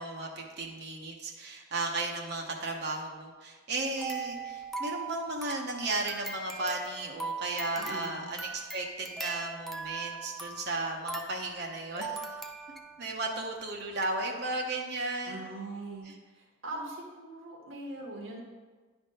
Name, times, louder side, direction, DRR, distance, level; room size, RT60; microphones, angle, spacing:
voice 1, 0.0-12.2 13.0-15.4 16.0-16.1, right 2 dB, 55° right, 1 dB, 0.9 m, -35 dB
sound 1, 4.0-13.1 13.6-13.7 14.0-14.1, right 3 dB, ahead, 0.3 m, -40 dB
voice 2, 7.7-8.3 15.3-16.1 16.3-18.4, right 2 dB, 80° right, -3 dB, 1.5 m, -41 dB
10.0 x 3.6 x 5.5 m, 1.3 s
head